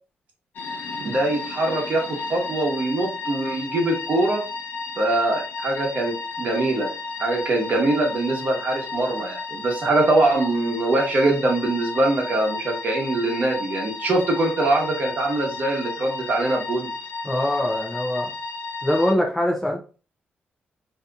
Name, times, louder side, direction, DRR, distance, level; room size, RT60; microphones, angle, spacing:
sound 1, 0.5-19.1, left 3 dB, 60° left, 0.5 m, -33 dB
voice 1, 1.0-4.4 5.0-6.9 7.2-16.9, right 2 dB, 45° right, 0 dB, 1.0 m, -23 dB
voice 2, 17.2-18.3 18.8-19.8, left 1 dB, 5° left, 0 dB, 0.5 m, -23 dB
2.8 x 2.5 x 3.4 m, 0.36 s
wide cardioid pair, 155°, 4 cm